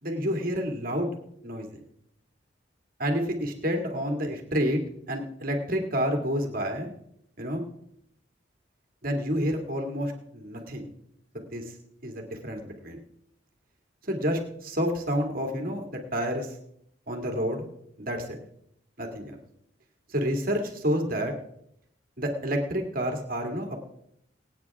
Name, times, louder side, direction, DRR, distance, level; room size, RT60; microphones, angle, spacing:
voice 1, 0.0-1.2 1.4-1.8 3.0-4.8 5.1-6.9 7.4-7.6 9.0-10.9 11.3-11.6 12.0-13.0 14.0-16.5 17.1-17.6 18.0-18.4 19.0-19.3 20.1-21.3 22.2-23.8, equal, 50° right, 3 dB, 2.3 m, -29 dB
24.0 x 9.1 x 3.6 m, 0.74 s
head